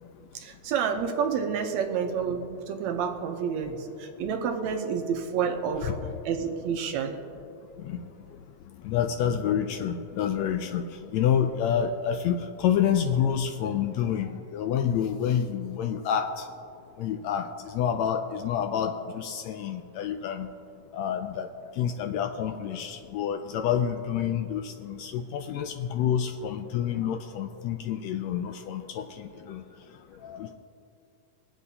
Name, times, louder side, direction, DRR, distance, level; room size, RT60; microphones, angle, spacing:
voice 1, 0.3-5.9 6.3-7.2, right 6 dB, 75° right, 4 dB, 2.0 m, -29 dB
voice 2, 8.8-16.5 17.0-20.5 20.9-21.5 21.8-29.6 30.2-30.5, left 8 dB, 80° left, 7 dB, 1.6 m, -28 dB
24.5 x 8.1 x 2.8 m, 2.6 s
omnidirectional pair, 3.4 m